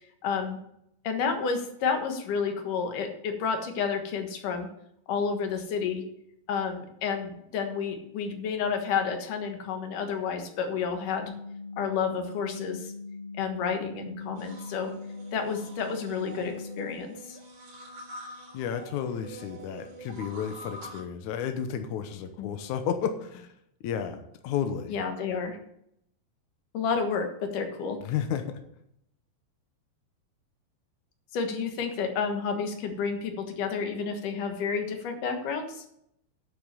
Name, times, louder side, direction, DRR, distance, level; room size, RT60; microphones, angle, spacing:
voice 1, 0.2-0.6 1.0-4.7 5.1-6.0 6.5-11.3 11.8-12.9 13.4-14.9 15.3-17.4 22.4-22.5 24.9-25.6 26.7-28.0 31.3-35.8, left 6 dB, 60° left, 5 dB, 2.7 m, -30 dB
sound 1, 11.2-16.9, left 3 dB, 40° left, 0.8 m, -41 dB
sound 2, 14.3-21.0, right 1 dB, 45° right, 2.6 m, -46 dB
voice 2, 18.5-23.5 23.8-24.2 24.4-24.9 28.0-28.6, left 8 dB, 85° left, 7 dB, 1.7 m, -32 dB
9.8 x 7.2 x 6.7 m, 0.74 s
omnidirectional pair, 4.8 m